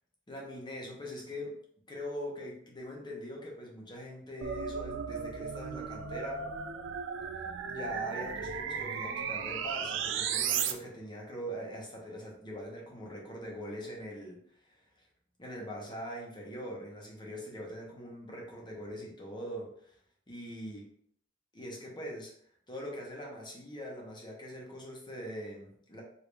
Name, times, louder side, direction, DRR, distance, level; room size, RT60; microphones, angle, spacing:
voice 1, 0.3-1.5 1.9-6.4 7.6-15.0 15.4-19.9 20.3-20.8 21.5-22.3 22.7-26.0, equal, 25° left, -2 dB, 1.2 m, -42 dB
sound 1, 4.4-10.7, right 7 dB, 70° right, 0.5 m, -35 dB
5.2 x 3.0 x 3.3 m, 0.65 s
head